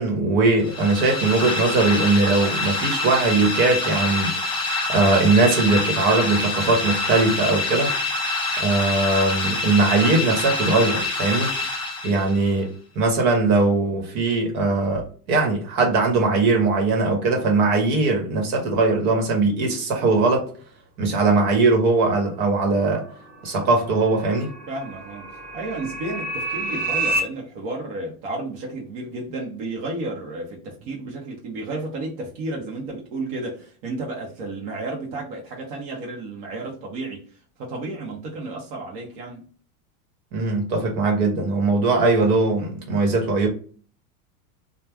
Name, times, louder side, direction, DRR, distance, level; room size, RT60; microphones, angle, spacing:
voice 1, 0.0-4.3 4.9-7.9 8.6-11.5 12.0-20.5 21.0-23.0 23.4-24.5 40.3-43.5, right 3 dB, 70° right, 1.2 m, -20 dB
sound 1, 0.6-12.5, left 2 dB, 10° left, 0.8 m, -26 dB
sound 2, 23.0-27.2, right 2 dB, 20° right, 0.4 m, -30 dB
voice 2, 24.7-25.3 25.5-37.2 37.6-39.4, right 2 dB, 50° right, 1.0 m, -32 dB
3.1 x 2.3 x 2.3 m
supercardioid pair, 120°, 45 cm